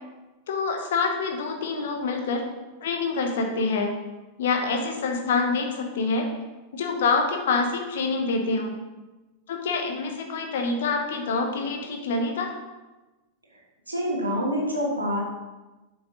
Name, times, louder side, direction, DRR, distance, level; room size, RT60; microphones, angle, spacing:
voice 1, 0.5-2.5 2.8-3.9 4.4-6.3 6.7-8.7 9.5-12.5, left 4 dB, 60° left, 3 dB, 1.3 m, -26 dB
voice 2, 13.9-15.2, equal, 80° right, -1 dB, 1.5 m, -26 dB
7.5 x 5.6 x 4.0 m, 1.1 s
figure-of-eight pair, 90°, 0 cm